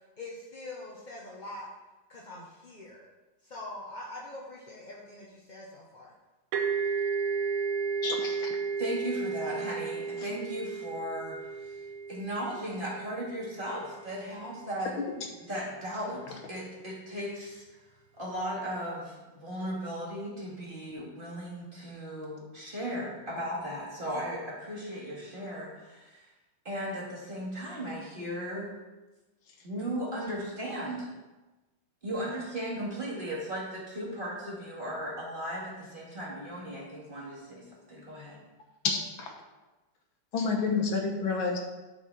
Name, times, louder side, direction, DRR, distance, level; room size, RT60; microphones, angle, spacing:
voice 1, 0.2-1.7 2.1-3.1 3.4-6.1, left 2 dB, 40° left, -4 dB, 0.6 m, -43 dB
sound 1, 6.5-14.1, right 5 dB, 90° right, 1.6 m, -33 dB
voice 2, 8.0-8.6 38.8-39.3 40.3-41.6, left 4 dB, 75° left, 3 dB, 1.8 m, -29 dB
voice 3, 8.8-11.8 12.1-14.9 15.5-17.6 18.1-26.3 26.6-28.7 29.6-31.1 32.0-38.4, equal, 25° right, -6 dB, 2.4 m, -36 dB
12.0 x 4.9 x 4.2 m, 1.1 s
omnidirectional pair, 2.3 m